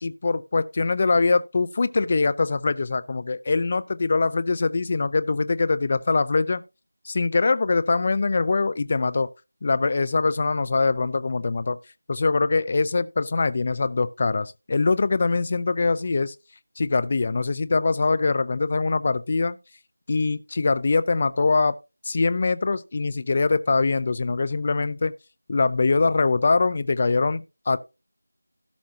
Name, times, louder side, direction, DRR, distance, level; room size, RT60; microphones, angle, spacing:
voice 1, 0.0-6.6 7.0-9.3 9.6-11.8 12.1-16.4 16.8-19.6 20.1-21.7 22.0-25.1 25.5-27.8, left 3 dB, 30° left, 0.6 m, -23 dB
17.0 x 5.7 x 2.9 m
figure-of-eight pair, 170°, 0 cm